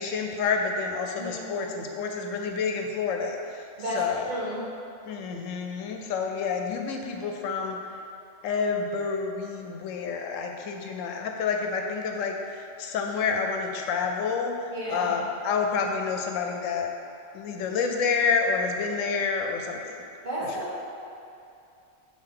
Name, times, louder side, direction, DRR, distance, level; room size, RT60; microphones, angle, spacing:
voice 1, 0.0-4.3 5.1-8.0 8.4-16.9 17.3-19.8 20.4-20.6, left 5 dB, 80° left, 3 dB, 0.9 m, -29 dB
voice 2, 1.1-1.7 3.8-4.0 4.3-4.7 14.7-15.1 20.2-20.8, right 1 dB, 40° right, -8 dB, 1.3 m, -33 dB
6.3 x 4.3 x 3.7 m, 2.6 s
omnidirectional pair, 1.3 m